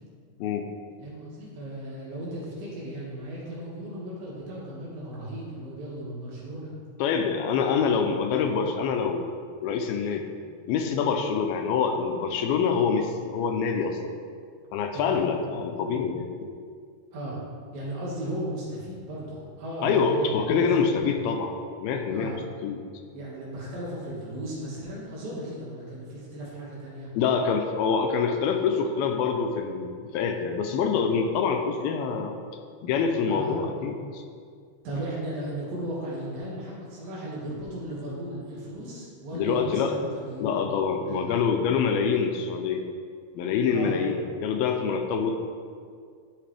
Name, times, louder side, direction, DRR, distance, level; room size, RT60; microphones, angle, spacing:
voice 1, 0.4-0.7 7.0-9.3 9.6-10.3 10.7-14.0 14.7-16.5 19.8-21.5 21.8-22.3 22.6-22.8 27.2-32.4 32.8-34.2 39.3-40.0 40.4-42.8 43.3-45.4, left 6 dB, 80° left, 4 dB, 2.4 m, -26 dB
voice 2, 1.0-6.7 7.6-7.7 14.9-15.2 17.1-17.4 17.7-20.7 22.1-22.4 23.1-27.1 33.3-33.5 34.8-40.5 41.0-41.2 43.7-44.0, right 1 dB, 65° right, -6 dB, 3.6 m, -36 dB
12.5 x 5.7 x 3.3 m, 2.1 s
omnidirectional pair, 4.4 m